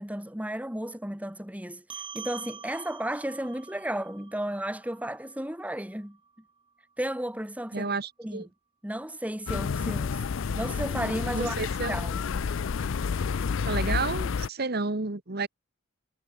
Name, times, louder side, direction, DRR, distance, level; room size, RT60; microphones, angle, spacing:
voice 1, 0.0-6.2 7.0-7.9 8.2-8.4 8.8-10.2 10.5-11.6 11.9-12.2, right 1 dB, 5° right, 2.1 m, -33 dB
sound 1, 1.9-6.7, right 6 dB, 25° right, 2.7 m, -45 dB
voice 2, 7.7-8.5 11.3-12.0 13.7-15.5, right 3 dB, 50° right, 1.3 m, -31 dB
sound 2, 9.5-14.5, left 5 dB, 65° left, 0.4 m, -30 dB
head